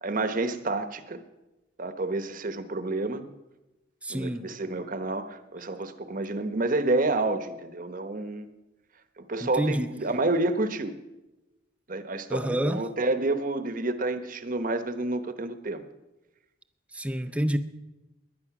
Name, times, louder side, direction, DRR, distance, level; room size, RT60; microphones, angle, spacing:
voice 1, 0.0-1.2 1.8-3.2 4.1-8.5 9.2-10.9 11.9-15.8, right 2 dB, 45° right, 1.0 m, -29 dB
voice 2, 4.0-4.5 9.4-9.9 12.3-12.9 16.9-17.6, equal, 5° right, 0.7 m, -28 dB
19.5 x 11.0 x 6.0 m
head